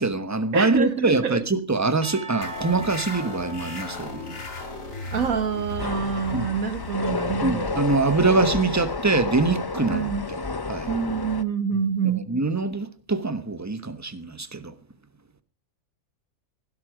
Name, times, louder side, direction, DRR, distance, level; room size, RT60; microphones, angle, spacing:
voice 1, 0.0-4.2 6.3-6.5 7.4-10.4 10.7-10.9 12.3-14.7, right 3 dB, 15° right, 1.1 m, -24 dB
voice 2, 0.5-1.4 5.1-7.8 9.9-10.2 10.9-12.3, right 6 dB, 75° right, 1.8 m, -26 dB
Percussion / Church bell, 2.0-6.2, right 2 dB, 30° right, 1.4 m, -42 dB
sound 1, 2.4-9.5, left 3 dB, 70° left, 3.0 m, -37 dB
sound 2, 5.8-11.4, left 3 dB, 30° left, 0.4 m, -30 dB
17.0 x 11.5 x 5.0 m
omnidirectional pair, 1.5 m